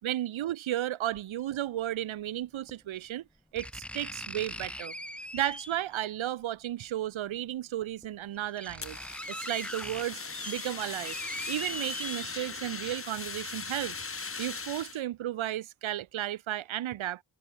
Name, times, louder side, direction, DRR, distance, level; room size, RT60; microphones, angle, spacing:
voice 1, 0.0-3.2 3.5-4.9 5.3-9.0 9.3-11.1 11.5-14.1 14.4-17.2, right 13 dB, 85° right, 1.1 m, -34 dB
sound 1, 1.1-1.2 2.7-2.8 3.6-5.9 7.3-7.4 8.0-8.1 8.3-12.8 13.2-13.3, equal, ahead, 1.8 m, -41 dB
Fire, 8.8-15.0, left 4 dB, 30° left, 4.5 m, -39 dB
wide cardioid pair, 175°, 46 cm